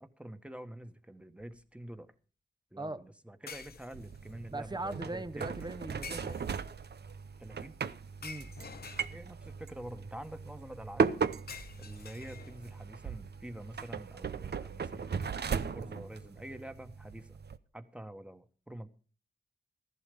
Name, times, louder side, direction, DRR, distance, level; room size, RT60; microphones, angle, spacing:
voice 1, 0.0-2.1 2.7-5.8 7.4-7.8 9.1-11.2 11.8-17.4 17.7-18.9, right 1 dB, 5° right, 1.5 m, -47 dB
sound 1, 1.4-1.6 3.5-4.3 6.0-6.8 8.2-9.5 11.5-12.8, left 5 dB, 60° left, 0.9 m, -48 dB
sound 2, 3.9-17.6, right 6 dB, 65° right, 0.7 m, -37 dB
voice 2, 4.5-6.5 8.2-8.5, right 2 dB, 25° right, 1.0 m, -40 dB
14.0 x 11.5 x 5.3 m
cardioid pair, 45°, 18 cm